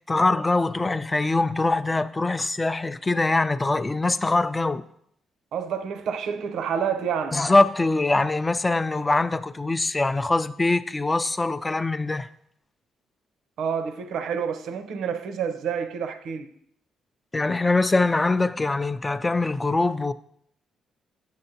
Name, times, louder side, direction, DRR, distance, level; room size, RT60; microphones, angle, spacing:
voice 1, 0.1-4.8 7.3-12.3 17.3-20.1, left 2 dB, 20° left, 0.3 m, -23 dB
voice 2, 5.5-7.4 13.6-16.5, right 7 dB, 75° right, 0.6 m, -28 dB
9.3 x 6.7 x 2.8 m
cardioid pair, 90°, 0 cm